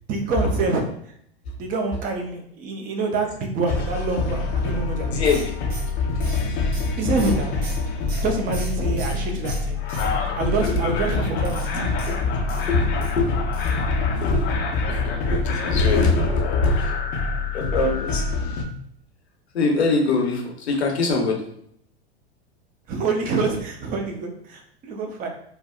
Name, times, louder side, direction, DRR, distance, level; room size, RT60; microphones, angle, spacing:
voice 1, 0.1-0.8 1.6-5.2 7.0-7.5 8.2-9.8 10.3-11.9 22.9-25.3, right 3 dB, 25° right, 4 dB, 0.5 m, -26 dB
sound 1, 3.7-18.6, left 3 dB, 30° left, 0.5 m, -25 dB
voice 2, 5.1-5.5 8.8-9.0 10.7-11.0 12.0-13.3 14.1-14.5 14.9-17.0 17.5-18.2 19.5-21.5, left 3 dB, 75° left, 1 dB, 0.8 m, -23 dB
sound 2, 5.3-9.2 9.5-10.5 11.4-13.1 13.5-13.8 14.1-14.2 14.5-14.6, right 2 dB, 45° right, 1.1 m, -40 dB
3.3 x 2.0 x 2.3 m, 0.68 s
hypercardioid pair, 100°, 32 cm